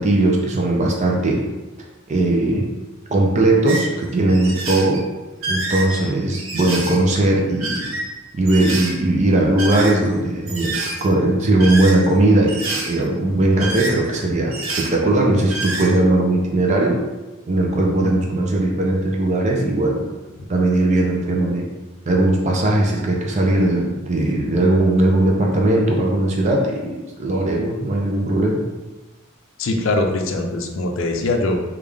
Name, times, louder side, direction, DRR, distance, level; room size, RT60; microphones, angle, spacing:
voice 1, 0.0-1.4 2.1-2.7 3.1-5.0 5.5-8.0 8.3-10.7 11.0-17.0 17.5-20.0 20.5-21.7 22.1-26.9 27.2-28.6, right 2 dB, 35° right, 0 dB, 0.4 m, -18 dB
sound 1, 3.7-3.9 4.3-5.0 5.3-7.0 7.5-8.1 8.5-9.0 9.5-10.1 10.5-11.1 11.6-12.1 12.5-13.0 13.4-14.2 14.5-14.9 15.3-15.9, right 2 dB, 80° right, 0.7 m, -27 dB
voice 2, 29.6-31.6, left 2 dB, 65° left, 3 dB, 0.4 m, -22 dB
3.5 x 2.3 x 3.2 m, 1.1 s
head